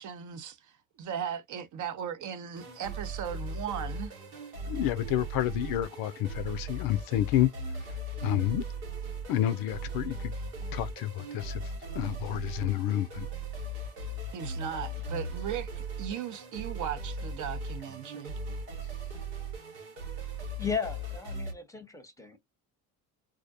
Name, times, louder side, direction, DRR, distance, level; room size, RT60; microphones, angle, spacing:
voice 1, 0.0-4.1 14.3-18.3, right 8 dB, 45° right, 0.6 m, -37 dB
sound 1, 2.5-21.5, right 2 dB, 85° right, 1.2 m, -38 dB
voice 2, 4.7-7.5 8.2-8.6 9.3-10.3 10.7-13.3, left 12 dB, 55° left, 0.5 m, -29 dB
voice 3, 20.6-22.4, left 6 dB, 5° left, 0.8 m, -35 dB
2.3 x 2.1 x 2.6 m
hypercardioid pair, 65°, 45 cm